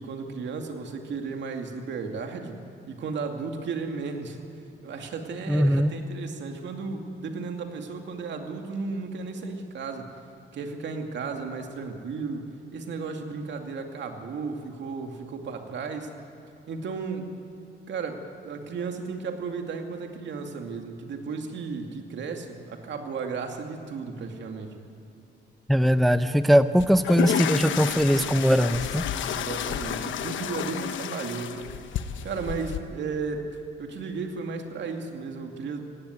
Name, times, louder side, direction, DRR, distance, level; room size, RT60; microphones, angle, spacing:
voice 1, 0.0-2.6 2.9-4.4 4.8-10.1 10.5-16.1 16.7-17.3 17.9-24.7 29.2-31.7 32.2-33.5 33.8-35.8, right 4 dB, 65° right, 4 dB, 2.4 m, -34 dB
voice 2, 5.5-5.9 25.7-29.1, equal, ahead, 12 dB, 0.5 m, -21 dB
sound 1, 26.8-32.8, left 9 dB, 75° left, 1.0 m, -31 dB
18.0 x 16.5 x 9.5 m, 2.7 s
cardioid pair, 90°, 20 cm